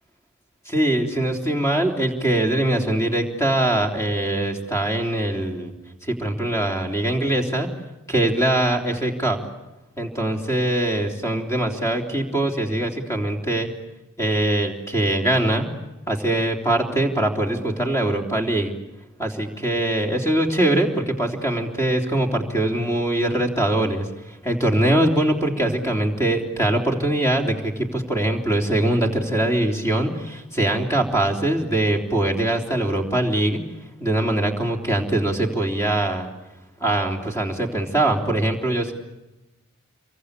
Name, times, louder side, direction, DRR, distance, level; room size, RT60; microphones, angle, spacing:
voice 1, 0.7-5.7 6.0-7.7 8.1-9.4 10.0-13.7 14.2-15.7 16.1-18.7 19.2-24.1 24.4-33.6 34.0-36.3 36.8-38.9, right 1 dB, 15° left, 2 dB, 3.4 m, -22 dB
28.0 x 23.5 x 8.4 m, 1.0 s
head